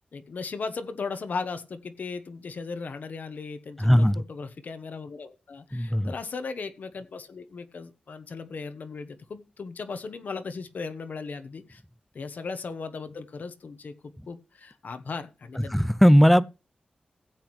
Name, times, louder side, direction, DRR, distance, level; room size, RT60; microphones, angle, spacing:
voice 1, 0.1-11.8 12.1-13.9 14.3-15.9, left 4 dB, 70° left, 1.1 m, -37 dB
voice 2, 3.8-4.2 5.7-6.1 15.7-16.4, equal, 5° left, 0.5 m, -18 dB
16.0 x 7.9 x 3.2 m
wide cardioid pair, 95°, 3 cm